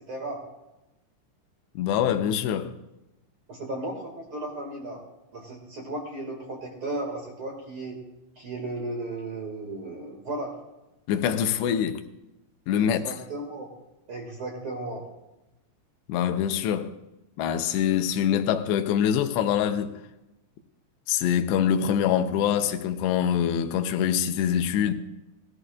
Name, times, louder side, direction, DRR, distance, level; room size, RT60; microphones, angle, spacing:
voice 1, 0.1-0.4 3.5-5.0 5.3-8.0 8.4-10.5 12.8-13.7 14.1-15.0, right 2 dB, 40° right, 2.1 m, -35 dB
voice 2, 1.8-2.8 11.1-12.0 12.7-13.0 16.1-17.0 17.4-20.0 21.1-24.9, left 9 dB, 75° left, 2.8 m, -24 dB
19.5 x 13.0 x 2.4 m
omnidirectional pair, 5.3 m